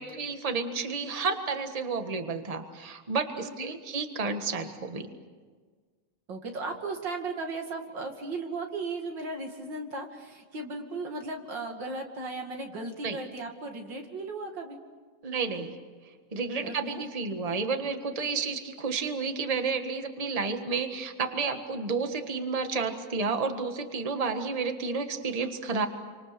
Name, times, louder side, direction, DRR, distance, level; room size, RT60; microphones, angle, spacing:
voice 1, 0.0-5.1 13.0-13.2 15.2-15.8 16.3-25.9, right 4 dB, 20° right, 6 dB, 1.5 m, -31 dB
voice 2, 3.4-3.8 6.3-14.8 16.6-17.0, right 3 dB, 85° right, 3 dB, 3.1 m, -36 dB
28.5 x 25.5 x 6.8 m, 1.5 s
omnidirectional pair, 1.9 m